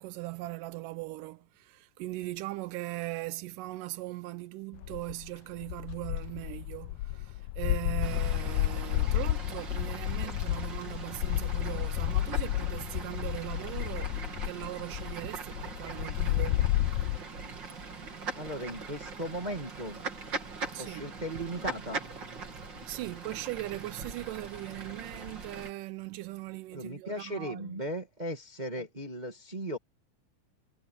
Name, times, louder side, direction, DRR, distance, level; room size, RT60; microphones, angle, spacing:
voice 1, 0.0-16.7 20.7-21.1 22.9-27.8 28.8-28.9, right 19 dB, 85° right, 2.2 m, -39 dB
sound 1, 4.7-5.3 5.6-17.2, left 15 dB, 85° left, 1.6 m, -31 dB
Fowl / Bird, 8.0-25.7, right 3 dB, 35° right, 3.5 m, -41 dB
voice 2, 18.3-20.0 20.8-22.0 26.7-29.8, right 1 dB, 15° right, 1.6 m, -37 dB
omnidirectional pair, 3.8 m